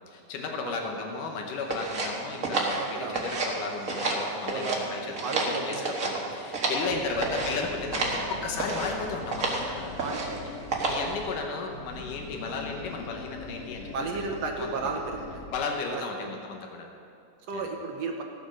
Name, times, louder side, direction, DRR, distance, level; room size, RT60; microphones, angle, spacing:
voice 1, 0.1-10.3 10.9-13.9 14.2-15.0 15.5-16.9 17.5-17.7, left 4 dB, 90° left, 2 dB, 2.7 m, -34 dB
sound 1, 1.7-3.6 3.8-4.8 5.1-6.9 7.2-7.6 7.9-8.2 8.6-8.9 9.3-9.6 10.0-10.4 10.7-11.1, right 3 dB, 40° right, 1.3 m, -30 dB
voice 2, 2.8-3.2 4.5-6.3 6.7-7.3 8.3-8.4 10.0-10.6 13.9-15.5 15.9-16.3 17.5-18.2, right 4 dB, 65° right, 2 dB, 1.9 m, -35 dB
Animal, 6.8-11.4 11.7-15.6, left 3 dB, 60° left, 2.3 m, -42 dB
16.0 x 7.9 x 6.3 m, 2.5 s
omnidirectional pair, 3.6 m